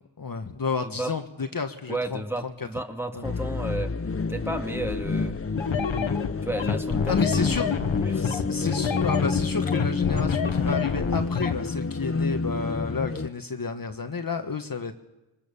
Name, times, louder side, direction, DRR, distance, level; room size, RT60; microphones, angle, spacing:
voice 1, 0.0-2.2 3.1-3.3 7.1-7.7 8.2-14.9, left 4 dB, 45° left, 6 dB, 1.5 m, -31 dB
voice 2, 1.9-3.9 4.3-5.4 6.4-8.3, right 1 dB, 5° right, 3 dB, 2.4 m, -33 dB
sound 1, 3.2-13.3, left 4 dB, 30° left, 0.8 m, -28 dB
sound 2, 5.6-11.6, left 6 dB, 70° left, 1.5 m, -28 dB
23.0 x 20.0 x 7.0 m, 0.98 s
cardioid pair, 50°, 48 cm